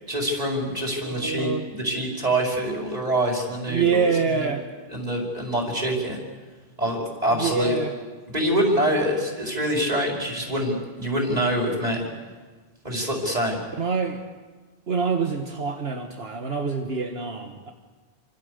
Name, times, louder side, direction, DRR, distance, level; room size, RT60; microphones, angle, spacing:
voice 1, 0.1-4.5 4.9-6.2 6.8-7.8 8.3-12.1 12.8-13.6, right 1 dB, 40° right, -1 dB, 5.7 m, -25 dB
voice 2, 1.0-1.7 3.7-4.6 7.3-7.9 11.3-11.5 13.8-14.2 14.9-17.7, right 5 dB, 75° right, 3 dB, 1.9 m, -26 dB
28.5 x 25.5 x 6.8 m, 1.3 s
omnidirectional pair, 1.1 m